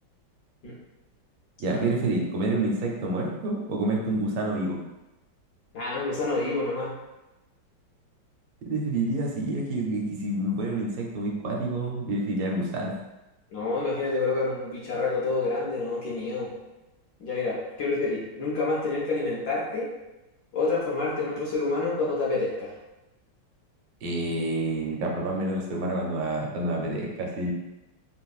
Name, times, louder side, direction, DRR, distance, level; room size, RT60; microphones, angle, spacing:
voice 1, 1.6-4.8 8.7-12.9 24.0-27.5, right 2 dB, 80° right, -1 dB, 1.3 m, -28 dB
voice 2, 5.7-6.9 13.5-16.5 17.2-19.9 20.5-22.7, left 3 dB, 65° left, -5 dB, 1.1 m, -28 dB
3.5 x 2.5 x 2.3 m, 1.0 s
omnidirectional pair, 2.1 m